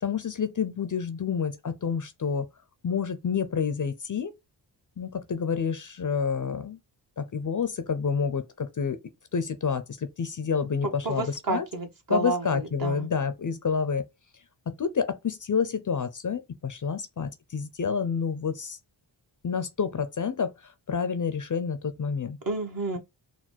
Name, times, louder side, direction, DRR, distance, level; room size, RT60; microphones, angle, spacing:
voice 1, 0.0-2.4 2.8-4.3 5.0-6.8 7.2-9.0 9.3-11.7 12.1-14.0 14.7-18.8 19.4-22.4, left 6 dB, 45° left, 0.6 m, -29 dB
voice 2, 10.8-13.1 22.4-23.0, right 3 dB, 45° right, 1.3 m, -30 dB
4.0 x 2.3 x 4.4 m
wide cardioid pair, 75°, 45 cm